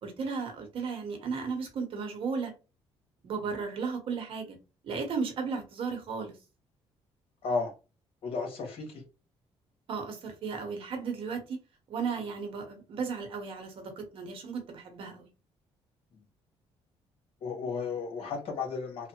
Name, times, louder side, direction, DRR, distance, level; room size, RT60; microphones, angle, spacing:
voice 1, 0.0-2.5 3.2-4.6 4.8-6.4 9.9-11.6 11.9-15.3, right 5 dB, 60° right, 1.0 m, -35 dB
voice 2, 8.2-9.0 17.4-19.1, left 4 dB, 60° left, 1.4 m, -33 dB
3.2 x 2.0 x 2.9 m
cardioid pair, 120°, 11 cm